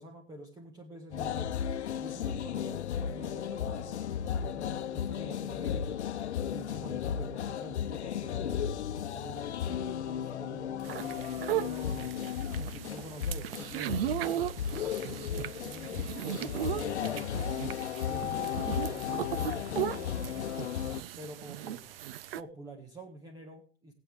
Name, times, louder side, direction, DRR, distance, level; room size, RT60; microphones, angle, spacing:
voice 1, 0.0-1.5 2.0-6.0 6.5-8.7 9.1-12.1 12.6-17.6 18.0-20.6 21.2-21.9 22.4-23.9, right 1 dB, 10° right, 3 dB, 1.7 m, -47 dB
sound 1, 1.1-21.0, left 9 dB, 80° left, 0.9 m, -35 dB
sound 2, 10.8-22.4, right 11 dB, 60° right, 0.8 m, -37 dB
20.0 x 8.6 x 3.4 m, 0.40 s
hypercardioid pair, 145°, 33 cm